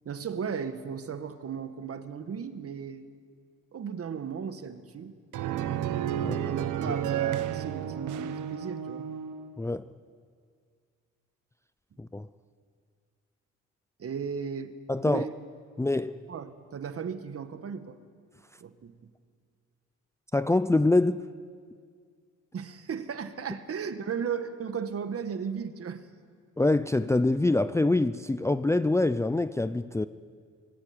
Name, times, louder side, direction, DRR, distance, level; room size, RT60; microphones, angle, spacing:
voice 1, 0.1-3.1 3.7-5.1 6.2-9.1 14.0-14.7 15.1-15.3 16.3-18.0 18.6-19.0 22.5-26.1, right 7 dB, 50° right, 1.7 m, -36 dB
sound 1, 5.3-9.5, right 10 dB, 80° right, 1.2 m, -31 dB
voice 2, 14.9-15.3 15.8-16.2 20.3-21.2 26.6-30.1, left 2 dB, 10° left, 0.5 m, -25 dB
24.5 x 19.5 x 8.9 m
cardioid pair, 90°, 30 cm